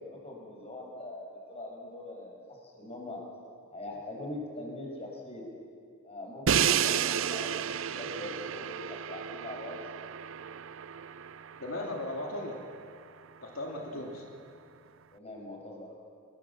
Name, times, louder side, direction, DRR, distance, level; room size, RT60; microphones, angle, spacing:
voice 1, 0.0-3.2 3.7-5.6 6.0-9.8 13.7-14.3 15.1-16.0, left 1 dB, 30° left, 0 dB, 6.0 m, -42 dB
Crash cymbal, 6.5-12.4, right 8 dB, 65° right, 0.5 m, -31 dB
voice 2, 11.6-12.6 13.4-14.2, left 1 dB, 85° left, -1 dB, 2.8 m, -37 dB
25.5 x 21.0 x 7.2 m, 2.3 s
head